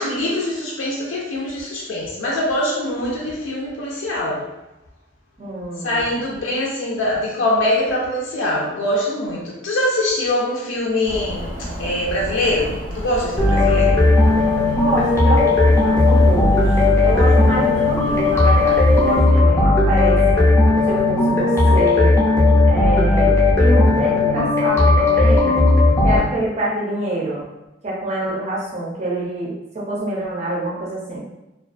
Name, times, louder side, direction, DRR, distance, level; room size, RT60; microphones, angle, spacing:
voice 1, 0.0-4.5 5.8-14.0, left 1 dB, 90° left, -4 dB, 0.4 m, -23 dB
voice 2, 5.4-6.3 14.7-16.7 17.0-20.5 20.9-22.1 22.6-25.6 26.0-27.4 27.8-31.2, right 1 dB, 35° right, -6 dB, 0.5 m, -26 dB
sound 1, 11.0-19.2, equal, 85° right, 1.1 m, -31 dB
sound 2, 13.4-26.2, left 2 dB, 15° left, 0.4 m, -15 dB
2.4 x 2.3 x 2.4 m, 0.96 s
head